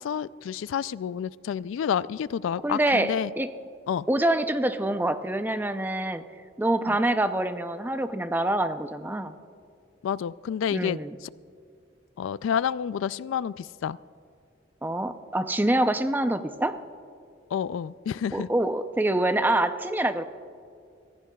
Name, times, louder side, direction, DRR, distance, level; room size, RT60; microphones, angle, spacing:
voice 1, 0.0-3.3 3.9-4.1 6.9-7.0 10.0-11.3 12.2-14.0 17.5-18.5, left 8 dB, 85° left, 19 dB, 0.3 m, -29 dB
voice 2, 2.6-3.5 4.1-6.2 6.6-9.3 10.7-11.2 14.8-16.7 18.3-20.2, right 1 dB, 10° right, 9 dB, 0.5 m, -25 dB
24.5 x 16.0 x 2.3 m, 2.3 s
head